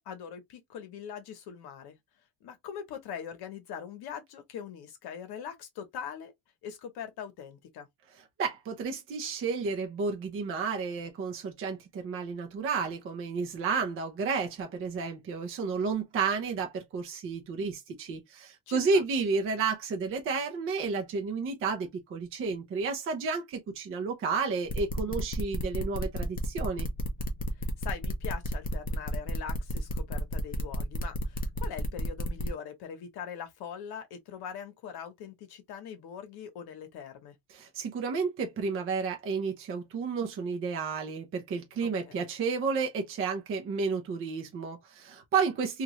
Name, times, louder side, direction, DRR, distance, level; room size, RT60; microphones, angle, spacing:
voice 1, 0.0-2.0 2.4-6.3 6.6-7.9 18.7-19.0 25.1-25.3 27.6-37.3 41.8-42.3, left 7 dB, 60° left, 1.0 m, -42 dB
voice 2, 8.4-26.9 37.5-45.8, right 5 dB, 30° right, 0.5 m, -31 dB
sound 1, 24.7-32.5, left 1 dB, 20° left, 0.5 m, -32 dB
2.9 x 2.4 x 2.9 m
cardioid pair, 165°, 44 cm